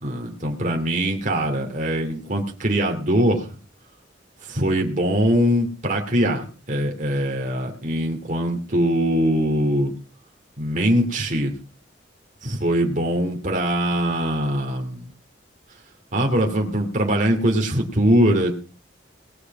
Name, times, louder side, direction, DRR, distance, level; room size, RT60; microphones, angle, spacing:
voice 1, 0.0-3.6 4.4-9.9 10.6-11.5 12.4-15.0 16.1-18.5, equal, 40° right, 1 dB, 2.6 m, -22 dB
19.5 x 6.7 x 6.1 m, 0.37 s
head